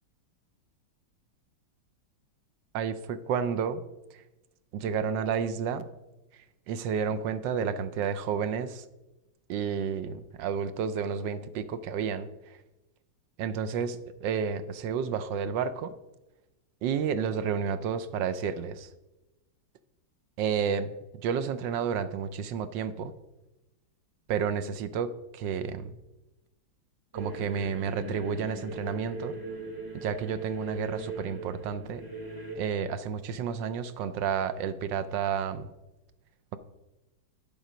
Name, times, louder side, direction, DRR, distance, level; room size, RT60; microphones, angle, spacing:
voice 1, 2.7-3.8 4.7-5.8 6.7-8.8 9.5-12.3 13.4-15.9 16.8-18.9 20.4-23.1 24.3-25.9 27.1-29.3 30.0-32.0 32.6-35.7, right 7 dB, 70° right, 13 dB, 1.2 m, -31 dB
sound 1, 27.1-32.6, right 2 dB, 25° right, 0.4 m, -40 dB
10.0 x 7.3 x 5.1 m, 1.0 s
omnidirectional pair, 2.3 m